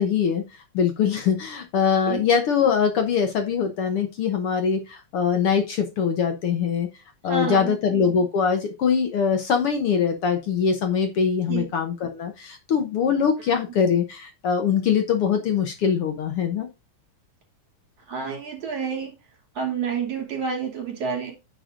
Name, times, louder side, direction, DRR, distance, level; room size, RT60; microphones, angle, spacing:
voice 1, 0.0-6.9 7.2-16.7, left 7 dB, 60° left, 1.6 m, -23 dB
voice 2, 7.3-7.8 11.5-11.7 18.1-19.1 19.5-21.3, right 6 dB, 55° right, 3.8 m, -29 dB
9.6 x 5.1 x 3.8 m
omnidirectional pair, 3.5 m